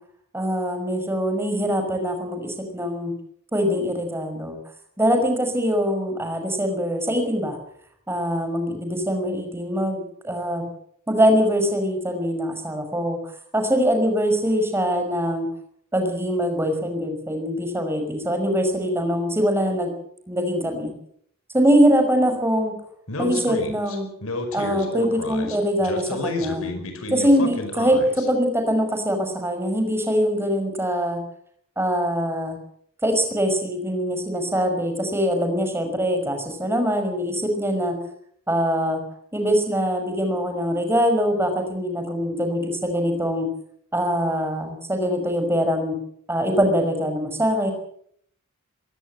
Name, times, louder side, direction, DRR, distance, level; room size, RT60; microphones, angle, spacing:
voice 1, 0.3-3.1 3.5-4.6 5.0-7.6 8.1-10.6 11.1-13.2 13.5-15.5 15.9-19.9 20.3-20.9 21.5-22.7 23.2-24.1 24.5-26.7 27.1-28.0 28.3-31.2 31.8-32.6 33.0-37.9 38.5-39.0 39.3-43.5 43.9-45.9 46.3-47.7, equal, 10° right, 5 dB, 5.7 m, -23 dB
Speech, 23.1-28.3, left 2 dB, 75° left, 5.0 m, -31 dB
22.0 x 17.5 x 7.9 m, 0.66 s
head